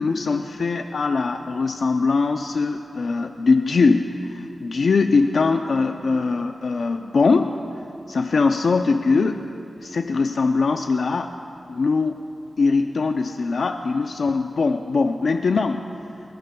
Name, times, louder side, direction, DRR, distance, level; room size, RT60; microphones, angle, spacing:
voice 1, 0.0-7.5 8.1-9.4 9.8-11.3 11.7-12.2 12.6-15.8, left 4 dB, 65° left, 6 dB, 0.4 m, -21 dB
23.0 x 21.5 x 2.3 m, 2.7 s
wide cardioid pair, 125°, 0 cm